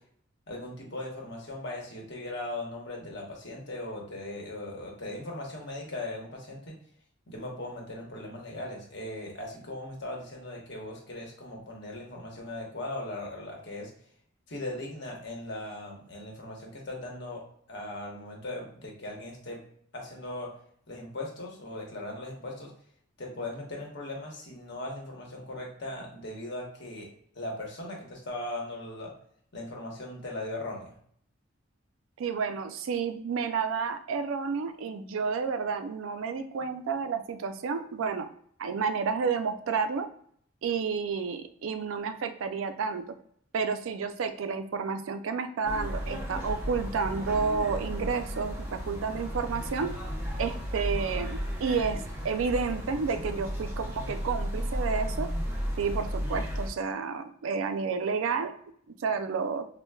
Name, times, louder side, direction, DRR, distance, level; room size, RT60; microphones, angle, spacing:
voice 1, 0.5-6.7 7.3-13.9 14.5-17.4 17.7-19.6 19.9-20.5 20.9-22.7 23.2-27.1 27.3-29.1 29.5-30.9, left 1 dB, 60° left, -1 dB, 1.0 m, -38 dB
voice 2, 32.2-38.3 38.6-40.1 40.6-43.1 43.5-49.9 50.4-55.3 55.8-58.5 59.0-59.6, right 5 dB, 85° right, 9 dB, 0.4 m, -30 dB
sound 1, 45.6-56.7, equal, 15° right, 0.6 m, -34 dB
4.4 x 2.1 x 2.2 m, 0.63 s
head